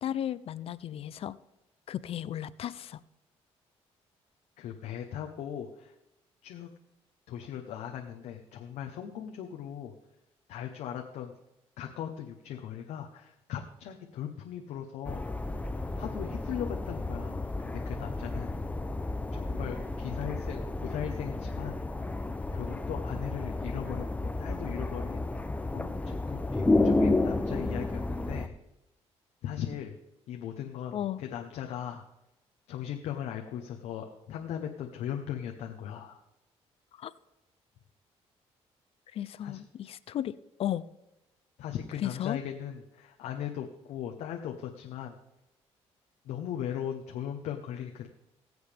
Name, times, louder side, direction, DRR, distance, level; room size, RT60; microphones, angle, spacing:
voice 1, 0.0-1.4 1.9-3.0 30.9-31.2 37.0-37.1 39.1-40.3 40.6-40.8 42.0-42.4, left 11 dB, 60° left, 17 dB, 0.5 m, -34 dB
voice 2, 4.6-5.9 6.4-6.7 7.3-9.9 10.5-11.3 11.8-15.3 16.0-18.5 19.3-21.8 22.5-25.3 25.5-28.5 29.4-30.0 30.3-32.0 32.7-36.2 39.4-39.6 41.6-45.2 46.2-48.1, left 9 dB, 90° left, 2 dB, 1.0 m, -38 dB
sound 1, 15.0-28.5, left 2 dB, 10° left, 0.7 m, -31 dB
20.5 x 7.9 x 3.5 m, 0.93 s
cardioid pair, 105°, 11 cm